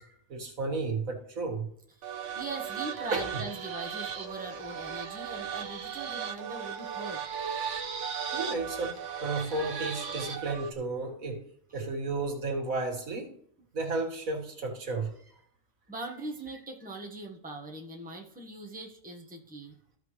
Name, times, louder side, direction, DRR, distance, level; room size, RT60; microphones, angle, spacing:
voice 1, 0.0-1.7 3.1-3.5 8.3-11.4 11.7-13.3 13.7-15.1 16.2-16.3, right 3 dB, 80° right, 2.0 m, -33 dB
voice 2, 2.0-7.2 15.9-19.8, right 2 dB, 5° right, 1.2 m, -41 dB
sound 1, 2.0-10.7, right 7 dB, 65° right, 1.2 m, -36 dB
14.0 x 5.7 x 3.1 m
omnidirectional pair, 1.4 m